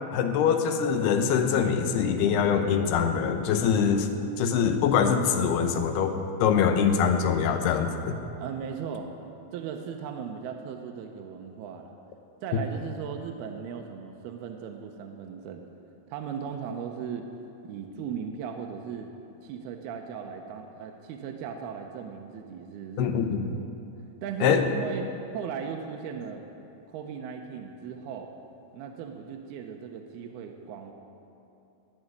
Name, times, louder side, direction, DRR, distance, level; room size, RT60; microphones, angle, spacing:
voice 1, 0.1-4.1 4.4-8.1 23.0-23.4 24.4-24.6, left 7 dB, 85° left, 6 dB, 2.9 m, -24 dB
voice 2, 8.4-9.1 9.5-11.9 12.4-15.7 16.1-17.3 17.6-19.1 19.4-23.2 23.6-23.9 24.2-26.4 26.9-28.3 28.7-30.9, right 7 dB, 80° right, 3 dB, 2.7 m, -37 dB
18.0 x 6.3 x 9.6 m, 2.8 s
omnidirectional pair, 4.5 m